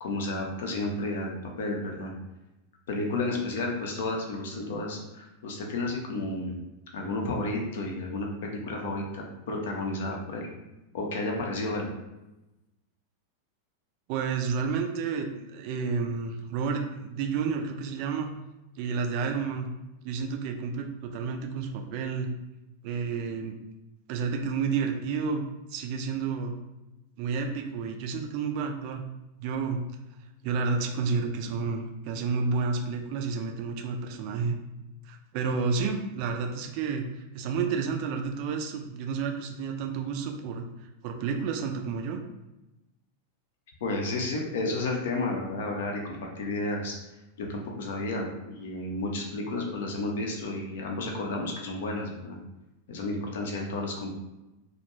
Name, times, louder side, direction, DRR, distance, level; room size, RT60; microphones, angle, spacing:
voice 1, 0.0-2.1 2.9-6.6 6.9-10.5 10.9-11.9 43.8-47.0 47.4-52.4 52.9-54.1, left 2 dB, 55° left, 0 dB, 0.5 m, -32 dB
voice 2, 14.1-18.3 18.8-19.7 20.0-22.3 22.8-23.6 24.1-25.4 25.7-26.5 27.2-29.0 29.4-29.8 30.4-34.6 35.0-40.6 41.0-42.2, right 5 dB, 45° right, 3 dB, 0.3 m, -30 dB
2.3 x 2.2 x 2.9 m, 0.98 s
figure-of-eight pair, 90°, 0 cm